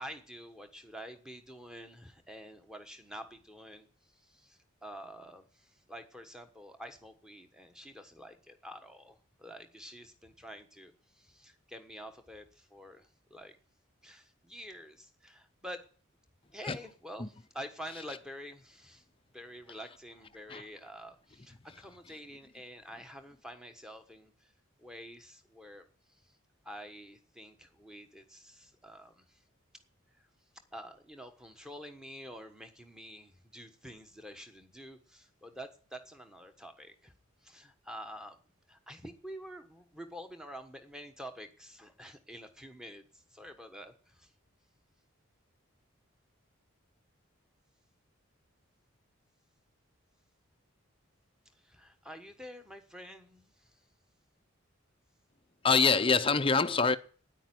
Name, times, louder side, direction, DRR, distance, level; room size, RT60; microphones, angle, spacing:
voice 1, 0.0-3.9 4.1-13.6 14.0-15.9 16.5-19.0 19.3-24.5 24.8-26.3 26.6-29.4 30.2-30.3 30.7-37.1 37.4-38.4 38.7-44.3 51.5-53.7, equal, 5° right, 1.3 m, -48 dB
voice 2, 55.6-57.0, left 4 dB, 25° left, 0.6 m, -25 dB
9.9 x 9.1 x 9.4 m
head